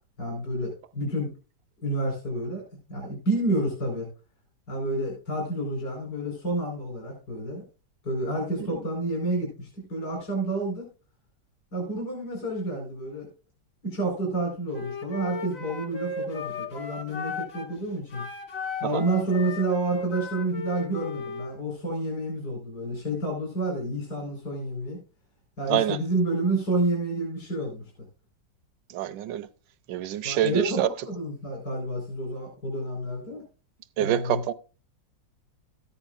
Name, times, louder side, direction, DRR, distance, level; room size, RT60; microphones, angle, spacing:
voice 1, 0.2-1.3 1.8-2.6 2.9-4.1 4.7-7.6 8.0-10.9 11.7-13.3 13.8-18.2 18.8-25.0 25.6-27.8 30.2-33.4 34.0-34.4, right 2 dB, 65° left, 5.2 m, -29 dB
Wind instrument woodwind instrument, 14.7-17.7 18.1-21.5, left 3 dB, 40° left, 1.2 m, -35 dB
voice 2, 28.9-29.5 29.9-30.9 34.0-34.5, right 13 dB, 75° right, 1.3 m, -26 dB
13.5 x 9.9 x 2.5 m
omnidirectional pair, 2.0 m